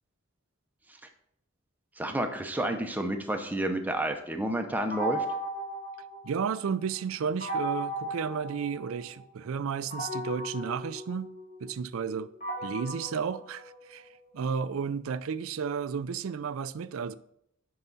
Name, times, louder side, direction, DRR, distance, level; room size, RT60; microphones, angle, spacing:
voice 1, 2.0-5.2, right 1 dB, 10° right, 0.7 m, -30 dB
sound 1, 4.9-6.7 7.4-9.2 9.9-14.2, right 1 dB, 35° left, 2.1 m, -36 dB
voice 2, 6.2-11.3 11.6-12.3 12.6-14.1 14.3-17.1, right 6 dB, 75° right, 0.4 m, -32 dB
11.0 x 4.7 x 4.1 m
head